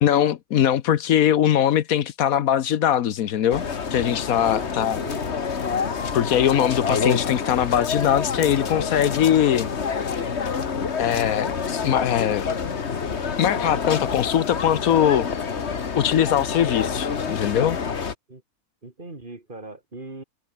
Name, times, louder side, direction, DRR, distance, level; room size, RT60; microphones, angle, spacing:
voice 1, 0.0-3.6 3.9-5.0 6.1-9.7 11.0-12.5 13.4-15.3 16.0-17.8, left 10 dB, 75° left, 1.3 m, -21 dB
sound 1, 3.5-18.1, left 6 dB, 50° left, 1.7 m, -27 dB
voice 2, 4.4-5.3 18.3-18.4 18.8-20.2, right 2 dB, 35° right, 2.8 m, -40 dB
omnidirectional pair, 1.5 m